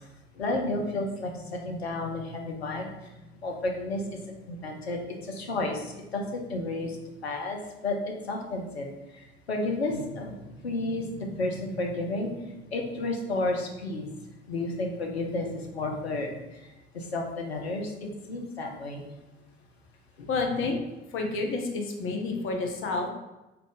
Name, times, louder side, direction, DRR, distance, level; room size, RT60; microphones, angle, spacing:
voice 1, 0.4-2.9 3.2-4.0 4.5-7.0 7.2-7.6 7.8-8.9 9.5-10.4 10.6-12.3 12.7-14.1 14.5-16.3 16.9-17.9 18.3-19.0 20.2-20.3, left 2 dB, 85° left, 2 dB, 0.6 m, -31 dB
voice 2, 20.3-20.8 21.1-23.1, left 3 dB, 40° left, 3 dB, 0.8 m, -29 dB
3.6 x 2.8 x 3.8 m, 1.0 s
figure-of-eight pair, 60°, 31 cm